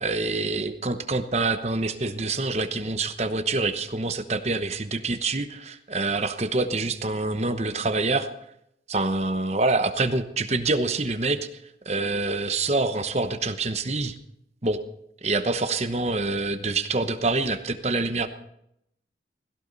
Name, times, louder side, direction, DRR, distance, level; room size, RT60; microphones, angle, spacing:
voice 1, 0.0-8.3 8.9-11.4 11.8-14.1 14.6-14.8 15.2-18.3, right 3 dB, 35° right, 8 dB, 1.0 m, -26 dB
17.5 x 16.0 x 4.1 m, 0.78 s
head